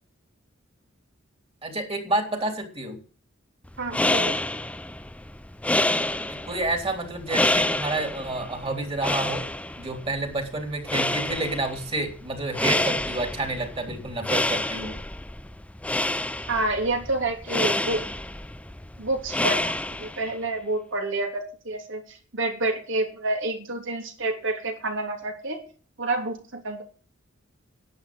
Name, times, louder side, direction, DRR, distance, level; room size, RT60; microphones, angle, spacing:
voice 1, 1.6-3.0 6.5-9.4 9.8-15.0, right 2 dB, 30° right, 5 dB, 3.2 m, -29 dB
sound 1, 3.7-20.3, left 1 dB, 5° left, 0.5 m, -28 dB
voice 2, 3.8-4.4 16.5-18.0 19.0-19.7 20.0-25.6 26.0-26.8, right 2 dB, 65° right, 4 dB, 3.2 m, -28 dB
11.0 x 9.4 x 7.7 m, 0.40 s
head